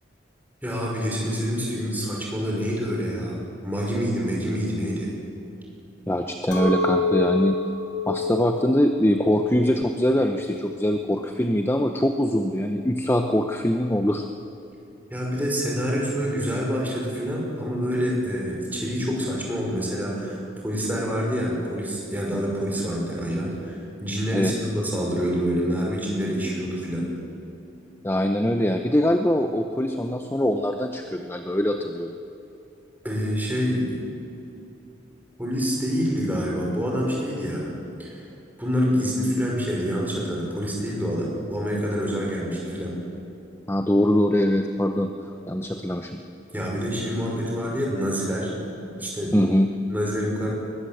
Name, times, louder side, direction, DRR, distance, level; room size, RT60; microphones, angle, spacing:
voice 1, 0.6-5.1 15.1-27.0 33.0-34.1 35.4-37.7 38.0-38.2 38.6-42.9 46.5-48.5 48.8-49.4 49.9-50.5, equal, 10° right, -3 dB, 5.7 m, -27 dB
voice 2, 6.1-7.6 8.1-14.2 24.3-24.5 28.0-32.1 43.7-45.1 45.5-46.2 49.3-49.7, left 1 dB, 10° left, 5 dB, 0.8 m, -23 dB
Chink clink, 6.5-11.7, left 2 dB, 65° left, 3.5 m, -28 dB
21.5 x 20.0 x 7.9 m, 2.8 s
head